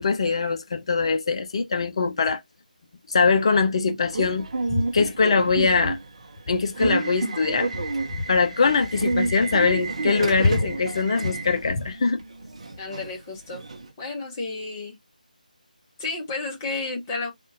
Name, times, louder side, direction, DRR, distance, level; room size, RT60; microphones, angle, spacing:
voice 1, 0.0-2.4 3.1-6.0 6.5-7.7 8.3-12.2, left 4 dB, 40° left, 0.6 m, -22 dB
Subway metro underground / Alarm, 4.1-13.9, right 3 dB, 45° right, 0.7 m, -30 dB
voice 2, 12.8-13.6 14.0-15.0 16.0-17.3, left 3 dB, 20° left, 1.1 m, -31 dB
3.5 x 2.5 x 2.5 m
figure-of-eight pair, 155°, 5 cm